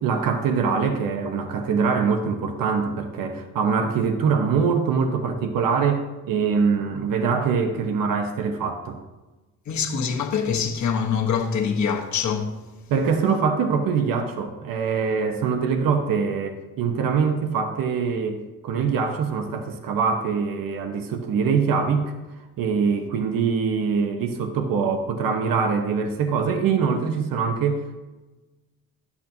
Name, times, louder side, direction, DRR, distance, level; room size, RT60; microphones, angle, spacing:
voice 1, 0.0-9.0 12.9-18.4 18.6-22.1 22.6-28.0, right 5 dB, 85° right, 1.0 m, -23 dB
voice 2, 9.7-12.6, left 6 dB, 55° left, 1.2 m, -24 dB
12.0 x 8.3 x 2.8 m
wide cardioid pair, 165°, 33 cm